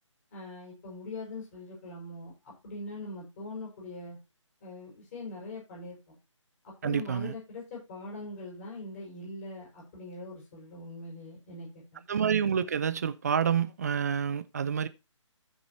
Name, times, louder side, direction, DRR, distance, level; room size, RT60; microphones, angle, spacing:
voice 1, 0.3-4.2 4.6-6.1 6.6-12.0, left 2 dB, 30° left, 6.5 m, -42 dB
voice 2, 6.8-7.3 12.1-14.9, right 7 dB, 30° right, 0.7 m, -28 dB
14.5 x 5.2 x 4.2 m
figure-of-eight pair, 145°, 16 cm